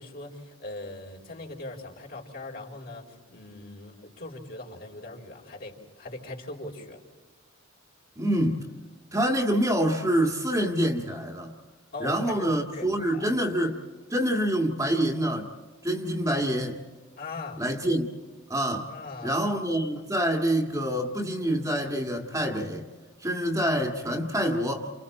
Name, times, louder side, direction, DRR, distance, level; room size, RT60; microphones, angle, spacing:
voice 1, 0.0-7.0 11.9-13.3 17.2-17.6 18.9-19.4, left 2 dB, 50° left, 4.3 m, -40 dB
voice 2, 8.2-8.7 9.1-11.5 12.0-13.8 14.1-15.5 15.8-16.8 17.6-18.1 18.5-18.9 19.2-22.9 23.2-24.9, equal, 15° right, 1.8 m, -26 dB
30.0 x 29.0 x 4.3 m
head